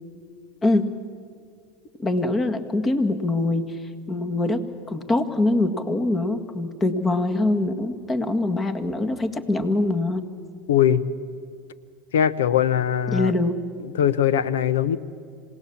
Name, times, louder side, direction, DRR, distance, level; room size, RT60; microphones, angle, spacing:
voice 1, 2.0-3.8 4.1-10.2 13.1-13.6, left 2 dB, 25° left, 8 dB, 1.9 m, -23 dB
voice 2, 10.7-11.1 12.1-13.3 14.0-15.0, left 9 dB, 85° left, 17 dB, 0.8 m, -20 dB
27.0 x 18.0 x 7.2 m, 2.3 s
hypercardioid pair, 90°, 0 cm